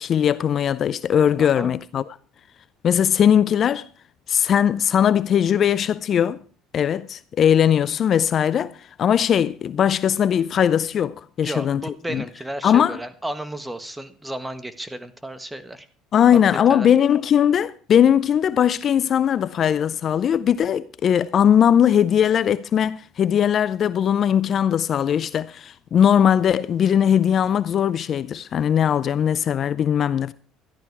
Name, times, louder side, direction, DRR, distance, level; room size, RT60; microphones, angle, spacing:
voice 1, 0.0-2.0 2.8-3.9 4.3-6.4 6.7-12.2 12.6-13.0 16.1-30.3, left 9 dB, 45° left, 0.5 m, -19 dB
voice 2, 1.4-1.7 11.4-15.9 16.5-16.9, right 1 dB, 10° right, 1.5 m, -33 dB
14.0 x 11.5 x 4.7 m
supercardioid pair, 105°, 0 cm